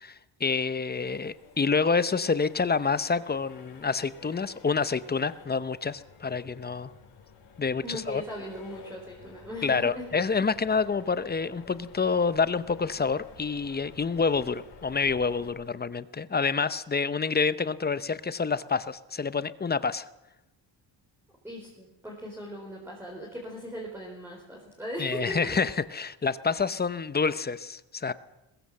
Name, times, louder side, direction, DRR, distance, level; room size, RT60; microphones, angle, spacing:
voice 1, 0.0-6.9 7.6-8.2 9.6-20.1 25.0-28.1, left 5 dB, 20° left, 14 dB, 0.7 m, -28 dB
Accelerating revving vroom, 0.9-15.5, left 6 dB, 65° left, 5.5 m, -51 dB
voice 2, 7.8-10.1 21.4-25.6, equal, 5° right, -2 dB, 4.4 m, -38 dB
22.0 x 20.5 x 7.7 m, 0.96 s
wide cardioid pair, 165°, 47 cm